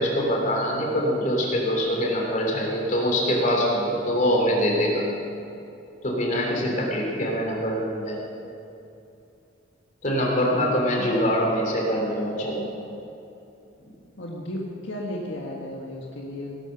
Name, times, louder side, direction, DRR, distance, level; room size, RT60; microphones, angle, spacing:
voice 1, 0.0-5.0 6.0-8.2 10.0-12.6, equal, 40° left, -1 dB, 3.4 m, -24 dB
voice 2, 10.5-11.2 14.2-16.6, left 1 dB, 75° left, -2 dB, 1.6 m, -34 dB
18.0 x 12.0 x 6.0 m, 2.7 s
head